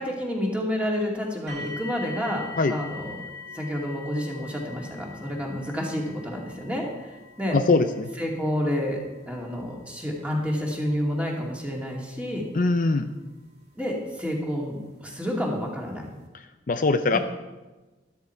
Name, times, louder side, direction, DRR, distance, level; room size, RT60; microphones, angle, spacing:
voice 1, 0.0-3.1 3.5-7.6 8.2-9.0 9.2-12.4 13.8-16.1 17.1-17.2, equal, 5° right, -2 dB, 2.4 m, -29 dB
sound 1, 1.5-14.3 15.2-15.3 15.9-16.0, left 3 dB, 60° right, 2.5 m, -44 dB
voice 2, 7.5-8.1 12.5-13.1 16.7-17.2, left 3 dB, 45° left, 8 dB, 0.5 m, -22 dB
13.0 x 12.5 x 4.6 m, 1.2 s
head